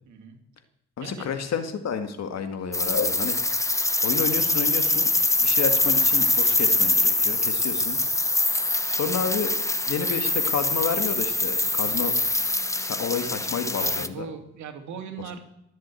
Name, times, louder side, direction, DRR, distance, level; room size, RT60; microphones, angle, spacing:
voice 1, 0.0-0.4 1.0-1.3 13.8-15.4, right 7 dB, 70° right, 5 dB, 2.5 m, -39 dB
voice 2, 1.0-3.4 4.0-5.1 5.4-8.0 8.9-9.6 9.9-12.2 12.8-14.3, left 6 dB, 60° left, 8 dB, 2.0 m, -30 dB
sound 1, 2.7-14.1, left 2 dB, 10° left, 0.9 m, -24 dB
21.5 x 7.9 x 8.4 m, 0.81 s
cardioid pair, 90°, 30 cm